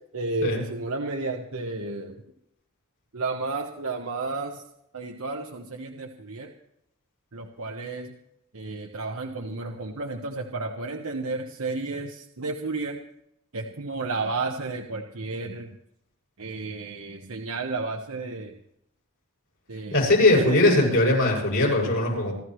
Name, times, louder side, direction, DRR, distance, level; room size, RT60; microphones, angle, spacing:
voice 1, 0.1-2.2 3.1-4.6 4.9-6.5 7.3-8.1 8.5-13.0 13.5-15.7 16.4-18.6 19.7-20.1 20.4-20.9, right 3 dB, 75° right, 2 dB, 1.1 m, -32 dB
voice 2, 19.9-22.3, left 2 dB, 65° left, -2 dB, 7.3 m, -20 dB
27.5 x 13.0 x 3.2 m, 0.78 s
head